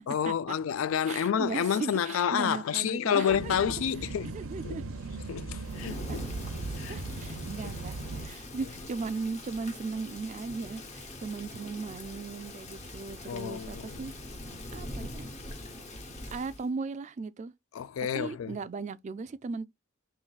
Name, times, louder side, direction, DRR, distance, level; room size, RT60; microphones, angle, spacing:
voice 1, 0.1-4.3 4.6-4.8 5.3-6.2 6.8-7.0 13.3-14.0 17.7-18.6, left 8 dB, 75° left, 0.3 m, -29 dB
voice 2, 1.0-3.8 4.3-4.8 5.8-6.2 6.9-8.0 8.3-14.1 14.7-15.3 16.3-17.5 18.1-19.7, right 4 dB, 35° right, 0.3 m, -37 dB
sound 1, 3.3-8.3, right 3 dB, 80° right, 0.6 m, -38 dB
Thunder / Rain, 5.6-16.7, left 1 dB, 35° left, 0.8 m, -43 dB
5.8 x 3.1 x 2.3 m
head